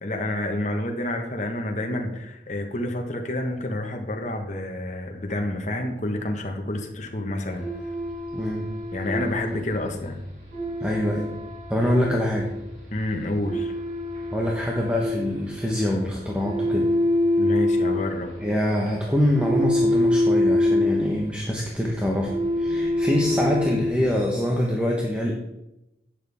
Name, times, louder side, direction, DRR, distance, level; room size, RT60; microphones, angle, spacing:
voice 1, 0.0-7.9 8.9-10.2 12.9-13.7 17.4-18.3, left 1 dB, 45° left, 3 dB, 1.4 m, -29 dB
sound 1, 7.5-24.1, left 1 dB, 45° right, 3.3 m, -26 dB
voice 2, 8.3-8.7 10.8-11.3 11.7-12.5 14.3-16.9 18.4-22.3 22.6-25.3, left 1 dB, 5° right, -2 dB, 1.2 m, -24 dB
11.5 x 8.8 x 3.6 m, 0.88 s
head